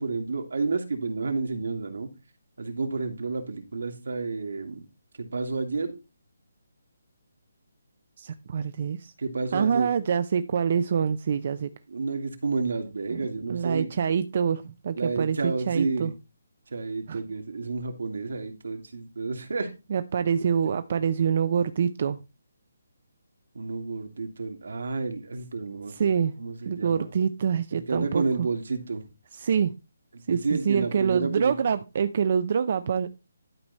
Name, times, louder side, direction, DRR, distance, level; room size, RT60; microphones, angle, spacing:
voice 1, 0.0-2.1 2.6-4.8 5.2-6.0 9.2-9.9 11.9-13.9 15.0-16.1 16.7-19.7 23.5-26.1 26.4-27.1 27.7-29.0 30.1-31.6, right 4 dB, 70° right, 2.4 m, -30 dB
voice 2, 8.2-9.1 9.5-11.7 13.1-13.2 13.5-16.1 17.1-17.2 19.9-22.2 25.9-26.3 26.7-28.2 29.3-29.7 30.3-33.2, right 7 dB, 35° right, 0.5 m, -26 dB
12.0 x 4.8 x 4.1 m
hypercardioid pair, 175°, 0 cm